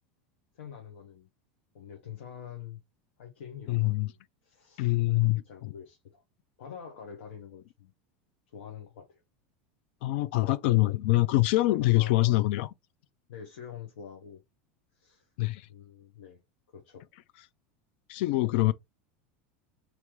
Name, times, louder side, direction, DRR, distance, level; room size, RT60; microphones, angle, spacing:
voice 1, 0.5-1.3 1.7-2.8 3.2-4.2 4.4-4.9 5.3-6.2 6.6-7.9 8.5-9.2 11.7-12.3 13.3-14.4 14.9-15.3 15.7-16.4 16.7-17.1, left 8 dB, 85° left, 0.9 m, -46 dB
voice 2, 3.7-4.1 4.8-5.4 10.0-12.7 15.4-15.6 18.1-18.7, left 18 dB, 70° left, 0.3 m, -24 dB
3.1 x 2.9 x 3.4 m
supercardioid pair, 125°, 6 cm